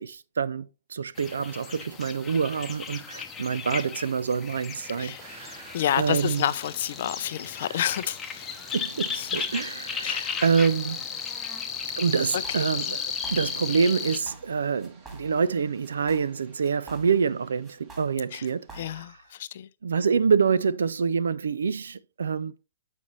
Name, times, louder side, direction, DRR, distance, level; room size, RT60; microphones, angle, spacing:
voice 1, 0.0-6.5 7.6-7.8 8.7-11.0 12.0-13.0 13.3-19.0 19.8-22.5, right 6 dB, 75° right, 0.4 m, -26 dB
sound 1, 1.2-14.2, left 6 dB, 20° left, 0.8 m, -35 dB
sound 2, 5.2-19.0, right 4 dB, 35° right, 1.6 m, -53 dB
voice 2, 5.7-8.5 9.2-9.3 10.0-10.4 18.3-18.4 18.8-19.1 19.4-19.7, left 11 dB, 55° left, 0.5 m, -29 dB
sound 3, 12.2-12.7 13.0-13.7 14.0-14.5 14.8-15.5 15.8-17.4 17.6-19.2, right 2 dB, 15° right, 2.0 m, -46 dB
7.4 x 5.3 x 3.1 m
hypercardioid pair, 125°, 0 cm